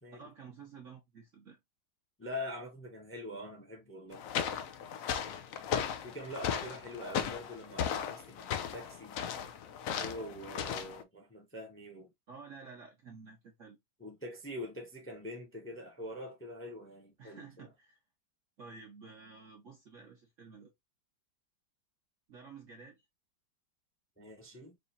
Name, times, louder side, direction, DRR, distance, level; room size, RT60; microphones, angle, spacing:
voice 1, 0.1-1.6 12.3-13.8 17.2-18.0 18.6-20.7 22.3-23.0, right 5 dB, 55° right, 1.0 m, -51 dB
voice 2, 2.2-4.2 6.0-9.2 10.0-12.1 14.0-17.7 24.2-24.8, left 1 dB, 10° left, 0.9 m, -44 dB
sound 1, 4.1-11.0, left 8 dB, 70° left, 0.8 m, -36 dB
4.9 x 2.7 x 2.6 m
omnidirectional pair, 2.0 m